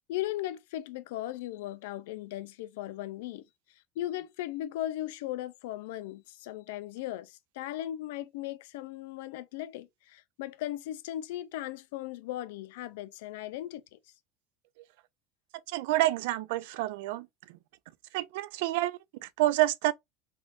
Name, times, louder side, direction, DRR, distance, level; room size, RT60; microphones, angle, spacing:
voice 1, 0.0-3.4 4.0-14.0, left 14 dB, 85° left, 0.4 m, -37 dB
voice 2, 15.7-17.3 18.1-19.9, right 16 dB, 75° right, 0.3 m, -28 dB
3.6 x 2.5 x 2.4 m
cardioid pair, 170°, 0 cm